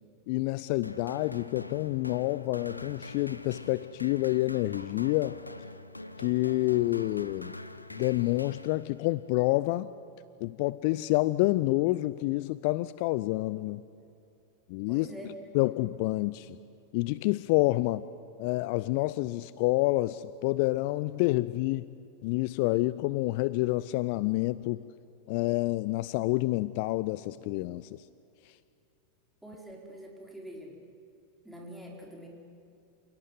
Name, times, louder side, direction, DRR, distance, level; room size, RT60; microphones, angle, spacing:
voice 1, 0.3-5.4 6.2-7.5 8.0-9.9 10.4-13.8 14.7-15.1 15.5-16.6 16.9-18.1 18.4-21.9 22.2-24.8 25.3-27.9, left 19 dB, 45° left, 17 dB, 0.5 m, -28 dB
sound 1, 0.8-9.2, left 2 dB, 85° left, 0.9 m, -44 dB
voice 2, 14.9-15.7 29.4-30.7 31.4-32.3, right 1 dB, 5° right, -1 dB, 4.8 m, -45 dB
27.5 x 17.5 x 9.4 m, 2.6 s
figure-of-eight pair, 90°, 0 cm